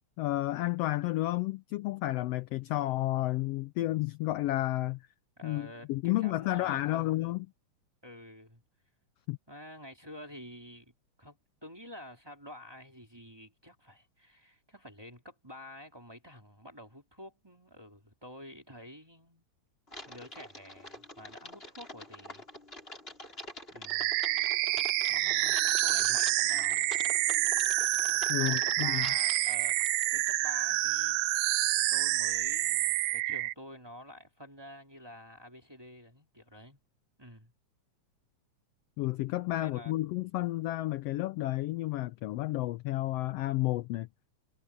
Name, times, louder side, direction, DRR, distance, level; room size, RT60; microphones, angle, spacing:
voice 1, 0.2-5.0 5.4-7.5 9.3-9.4 28.3-29.1 39.0-44.1, left 17 dB, 80° left, 1.4 m, -31 dB
voice 2, 5.4-5.9 6.2-7.2 8.0-8.6 9.5-19.5 20.1-22.4 23.7-24.2 25.1-26.9 28.3-29.8 30.1-36.8 37.2-37.5 39.6-39.9, left 1 dB, 10° right, 2.6 m, -49 dB
Typing, 19.9-30.4, left 1 dB, 20° left, 5.7 m, -46 dB
sound 1, 23.9-33.5, right 17 dB, 85° right, 2.0 m, -28 dB
omnidirectional pair, 3.3 m